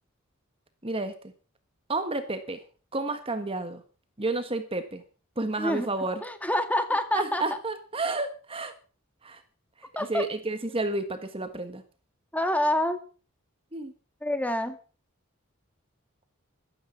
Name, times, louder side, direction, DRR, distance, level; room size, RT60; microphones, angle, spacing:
voice 1, 0.8-1.1 1.9-2.6 2.9-3.8 4.2-5.0 5.4-6.2 7.1-8.7 9.2-9.4 9.8-11.8 13.7-13.9, right 2 dB, 25° right, 9 dB, 1.5 m, -31 dB
voice 2, 5.6-5.9 6.2-7.4 10.0-10.3 12.3-13.0 14.2-14.8, left 1 dB, 5° left, 8 dB, 1.8 m, -27 dB
15.0 x 12.5 x 5.8 m, 0.38 s
head